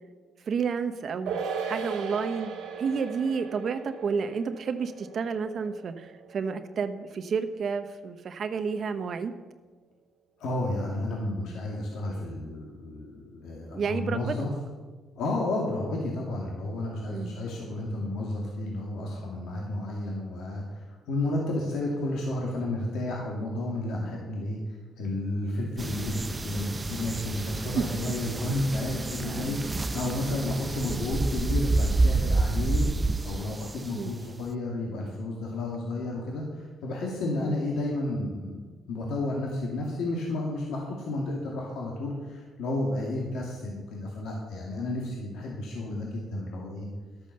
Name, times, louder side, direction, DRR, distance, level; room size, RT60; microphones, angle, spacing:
voice 1, 0.5-2.5 2.8-9.3 13.7-14.3 17.1-17.3 27.8-27.9 29.2-29.5 30.9-31.0 33.9-34.1 37.4-37.6, right 5 dB, 55° right, 8 dB, 0.8 m, -30 dB
sound 1, 1.3-7.9 8.2-8.3, right 5 dB, 85° right, 2.1 m, -38 dB
voice 2, 10.4-14.5 15.2-32.9 33.2-46.9, left 2 dB, 80° left, -2 dB, 2.2 m, -32 dB
sound 2, 25.8-34.2, right 2 dB, 25° right, 0.5 m, -29 dB
12.0 x 8.6 x 6.7 m, 1.3 s
cardioid pair, 90°, 0 cm